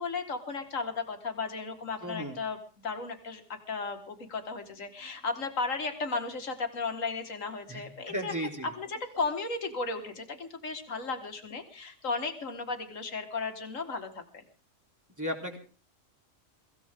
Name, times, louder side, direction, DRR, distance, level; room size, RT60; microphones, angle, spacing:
voice 1, 0.0-2.6 2.8-8.3 8.6-14.4, left 4 dB, 85° left, 6 dB, 2.2 m, -35 dB
voice 2, 2.0-2.4 7.7-8.7 15.2-15.6, equal, 15° right, 1 dB, 3.5 m, -35 dB
23.5 x 15.5 x 3.7 m, 0.38 s
omnidirectional pair, 1.3 m